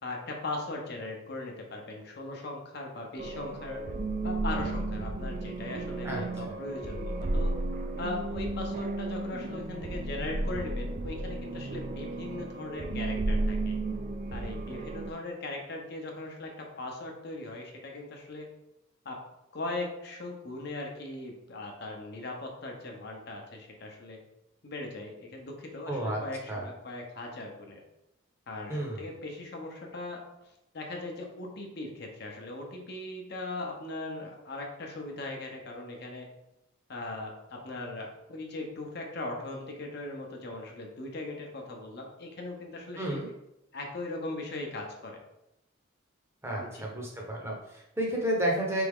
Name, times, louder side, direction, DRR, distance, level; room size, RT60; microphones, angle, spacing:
voice 1, 0.0-3.8 4.2-7.5 8.0-13.8 14.3-18.5 19.0-19.2 19.5-24.2 24.6-27.8 28.5-30.2 30.7-36.3 36.9-43.2 43.7-45.2 46.6-46.9, left 2 dB, 55° left, 1 dB, 0.8 m, -39 dB
sound 1, 3.2-15.1, right 2 dB, 40° right, 0.3 m, -33 dB
voice 2, 6.0-6.5 25.9-26.2 26.5-26.7 28.7-29.1 43.0-43.3 46.4-48.8, right 1 dB, 15° right, -2 dB, 0.8 m, -31 dB
4.1 x 3.5 x 3.6 m, 0.87 s
head